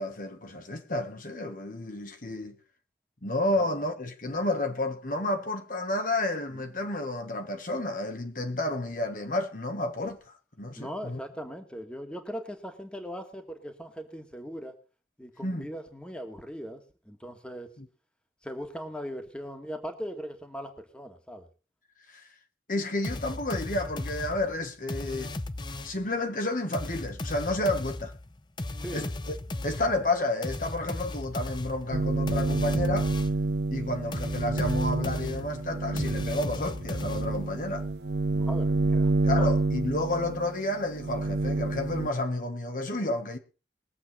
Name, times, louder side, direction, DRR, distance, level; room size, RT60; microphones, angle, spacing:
voice 1, 0.0-2.6 3.2-11.2 15.4-15.7 17.8-17.9 22.1-22.3 22.7-25.3 25.8-28.1 28.9-29.3 29.6-33.1 33.7-37.9 39.2-43.4, left 2 dB, 50° left, 1.5 m, -31 dB
voice 2, 10.8-14.8 15.2-17.7 18.4-21.5 28.8-29.1 38.3-39.1 39.4-39.5, equal, 5° left, 1.8 m, -39 dB
sound 1, 23.0-26.1 26.7-33.5 34.1-37.6, left 2 dB, 25° left, 0.7 m, -36 dB
sound 2, 31.9-42.1, right 3 dB, 70° right, 0.7 m, -28 dB
21.5 x 8.0 x 4.3 m
head